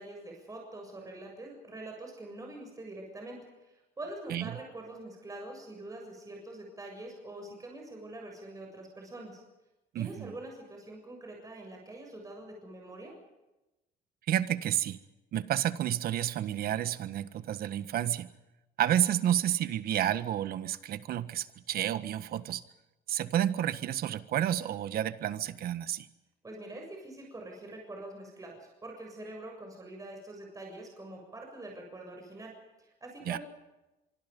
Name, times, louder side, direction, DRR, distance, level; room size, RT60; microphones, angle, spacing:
voice 1, 0.0-9.4 10.0-13.1 26.4-32.5 32.8-33.4, right 2 dB, 20° right, 1 dB, 7.3 m, -45 dB
voice 2, 9.9-10.3 14.3-15.0 15.3-18.3 18.8-22.6 23.1-26.1 33.3-33.4, right 11 dB, 65° right, 13 dB, 1.5 m, -30 dB
25.5 x 24.5 x 5.4 m, 1.0 s
cardioid pair, 110°, 17 cm